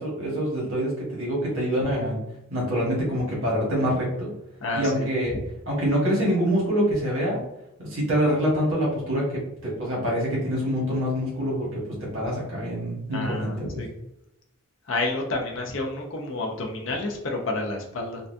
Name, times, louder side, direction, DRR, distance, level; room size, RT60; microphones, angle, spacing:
voice 1, 0.0-2.2 2.5-4.3 4.7-5.3 5.7-7.4 7.8-11.8 12.1-13.8, equal, 70° right, -4 dB, 1.2 m, -25 dB
voice 2, 4.6-5.1 13.0-13.9 14.9-18.2, left 2 dB, 65° left, 1 dB, 0.6 m, -30 dB
3.9 x 2.3 x 2.5 m, 0.83 s
head